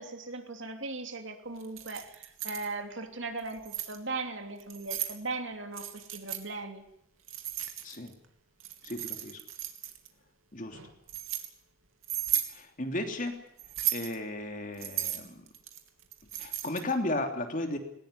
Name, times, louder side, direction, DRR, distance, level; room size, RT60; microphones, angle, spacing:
voice 1, 0.0-6.8, right 3 dB, 60° right, 6 dB, 3.0 m, -38 dB
Keys jangling, 1.6-2.7 3.4-4.0 4.6-5.2 5.7-6.4 7.3-8.1 8.6-10.1 10.7-11.5 12.0-12.5 13.6-14.1 14.8-16.9, right 12 dB, 80° right, 3.1 m, -35 dB
voice 2, 8.8-9.4 10.5-10.8 12.5-13.4 13.9-15.4 16.4-17.8, left 2 dB, 40° left, 5 dB, 3.2 m, -34 dB
20.0 x 19.5 x 9.9 m, 0.75 s
head